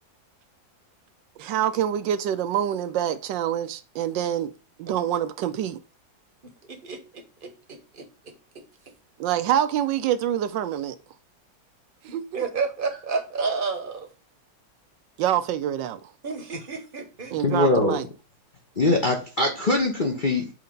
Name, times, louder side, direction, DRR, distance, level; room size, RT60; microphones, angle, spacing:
voice 1, 1.4-4.5 4.8-5.8 9.2-10.9 12.0-12.4 15.2-16.1 17.3-18.1, right 10 dB, 80° right, 1.3 m, -26 dB
voice 2, 6.7-8.3 12.3-14.1 16.2-17.6, right 4 dB, 35° right, 1.0 m, -31 dB
voice 3, 17.4-18.0 18.8-20.5, left 2 dB, 40° left, 0.7 m, -22 dB
7.9 x 2.8 x 5.2 m
omnidirectional pair, 2.0 m